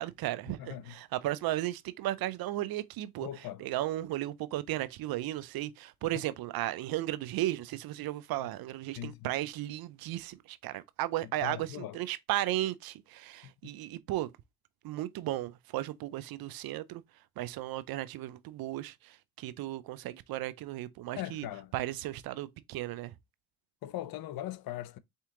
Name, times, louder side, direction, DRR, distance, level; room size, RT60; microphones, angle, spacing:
voice 1, 0.0-3.3 3.6-14.3 14.8-17.0 17.4-21.5 21.7-23.1, right 15 dB, 75° right, 0.6 m, -35 dB
voice 2, 0.6-0.9 3.2-3.7 6.1-6.2 9.0-9.3 11.2-12.0 13.4-13.7 21.2-21.7 23.8-25.0, left 13 dB, 70° left, 0.6 m, -40 dB
4.5 x 2.8 x 3.6 m
supercardioid pair, 55°, 36 cm